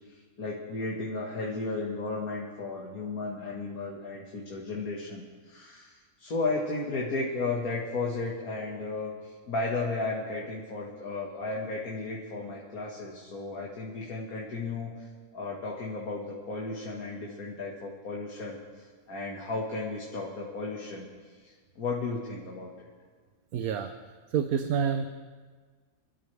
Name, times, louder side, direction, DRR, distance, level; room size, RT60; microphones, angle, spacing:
voice 1, 0.1-22.9, left 3 dB, 90° left, -3 dB, 2.2 m, -34 dB
voice 2, 23.5-23.9 24.3-25.1, right 7 dB, 85° right, 8 dB, 1.2 m, -27 dB
26.0 x 13.0 x 3.4 m, 1.5 s
omnidirectional pair, 1.5 m